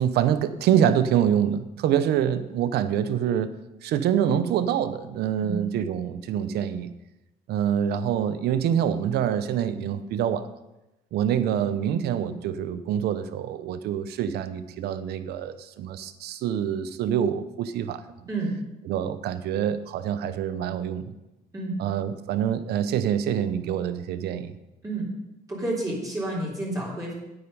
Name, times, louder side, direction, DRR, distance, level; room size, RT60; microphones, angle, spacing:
voice 1, 0.0-6.9 7.5-10.5 11.1-18.0 18.9-21.1 21.8-24.6, right 9 dB, 75° right, 13 dB, 0.7 m, -26 dB
voice 2, 25.5-27.1, right 2 dB, 20° right, -5 dB, 3.4 m, -30 dB
9.3 x 8.6 x 5.4 m, 0.96 s
cardioid pair, 110°, 17 cm